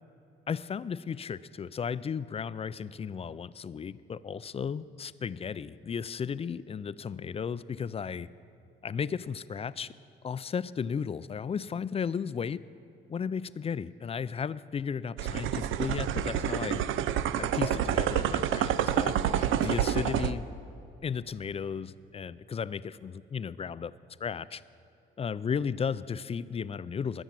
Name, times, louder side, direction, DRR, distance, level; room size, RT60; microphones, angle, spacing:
voice 1, 0.5-8.3 8.8-9.9 10.2-12.6 13.1-16.8 17.4-20.5 21.0-23.9 24.2-24.6 25.2-27.2, left 6 dB, 30° left, 17 dB, 0.4 m, -34 dB
sound 1, 15.2-20.3, right 10 dB, 90° right, 0.6 m, -28 dB
20.0 x 7.2 x 7.5 m, 2.9 s
cardioid pair, 90°, 20 cm